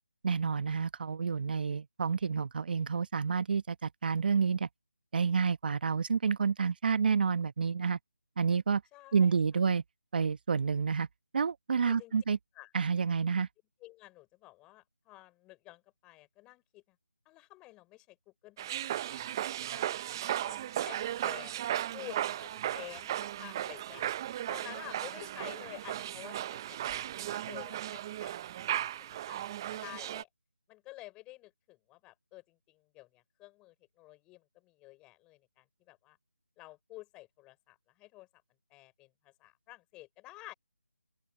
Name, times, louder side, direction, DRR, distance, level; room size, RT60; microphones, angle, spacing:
voice 1, 0.2-4.7 5.1-8.0 8.4-8.8 9.1-9.8 10.1-11.1 11.3-12.4 12.7-13.5, right 5 dB, 40° right, 1.1 m, -29 dB
voice 2, 8.9-9.4 11.9-12.1 12.6-12.7 13.8-17.0 17.3-18.2 18.4-19.9 20.4-24.1 24.5-28.4 29.0-30.3 30.7-36.2 36.6-38.3 38.7-40.5, left 19 dB, 10° left, 5.4 m, -51 dB
sound 1, 18.6-30.2, right 12 dB, 15° right, 0.6 m, -36 dB
open air
figure-of-eight pair, 165°, 8 cm